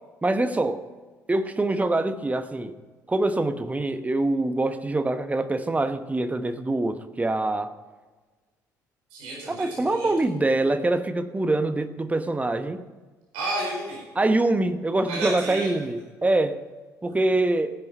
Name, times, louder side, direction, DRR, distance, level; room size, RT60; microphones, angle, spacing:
voice 1, 0.2-0.8 1.3-2.7 3.1-7.7 9.5-12.8 14.1-16.6 17.0-17.7, right 2 dB, 15° right, 9 dB, 1.1 m, -24 dB
voice 2, 9.1-10.1 13.3-14.0 15.1-15.7 17.1-17.2, right 1 dB, 65° right, -3 dB, 4.8 m, -31 dB
16.0 x 10.5 x 5.5 m, 1.3 s
figure-of-eight pair, 50°, 9 cm